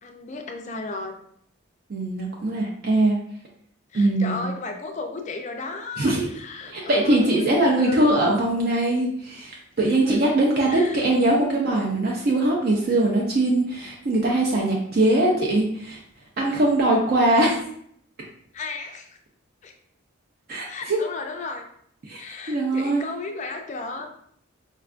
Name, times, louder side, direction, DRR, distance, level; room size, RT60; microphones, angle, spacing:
voice 1, 0.0-1.1 3.9-8.0 9.8-10.2 10.7-11.0 18.5-19.1 19.6-19.7 20.6-21.7 22.1-24.1, left 3 dB, 35° left, 4 dB, 0.3 m, -34 dB
voice 2, 1.9-3.2 3.9-4.5 6.0-6.3 6.7-16.0 16.4-17.6 20.5-21.0 22.1-22.2 22.5-23.1, right 1 dB, 45° right, -1 dB, 0.4 m, -21 dB
4.3 x 2.3 x 2.4 m, 0.67 s
head